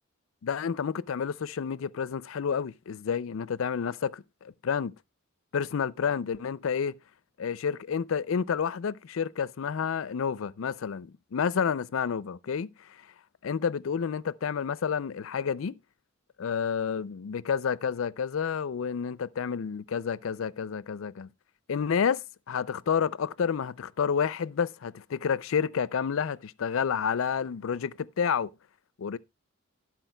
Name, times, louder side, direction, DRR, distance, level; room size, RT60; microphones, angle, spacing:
voice 1, 0.4-5.0 5.5-6.9 7.4-12.7 13.4-15.8 16.4-21.3 21.7-28.5 29.0-29.2, left 7 dB, 70° left, 0.4 m, -30 dB
11.5 x 10.5 x 2.2 m
head